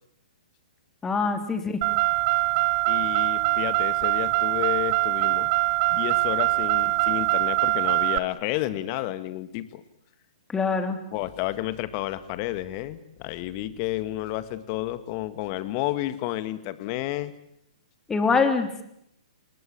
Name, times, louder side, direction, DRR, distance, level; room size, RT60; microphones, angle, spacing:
voice 1, 1.0-1.8 10.5-11.0 18.1-18.8, left 4 dB, 10° left, 7 dB, 3.2 m, -24 dB
Car, 1.8-8.2, right 20 dB, 35° right, 1.0 m, -23 dB
voice 2, 2.9-5.5 5.9-9.8 11.1-17.3, left 15 dB, 35° left, 13 dB, 1.9 m, -31 dB
29.0 x 20.0 x 8.9 m, 0.76 s
figure-of-eight pair, 120°, 4 cm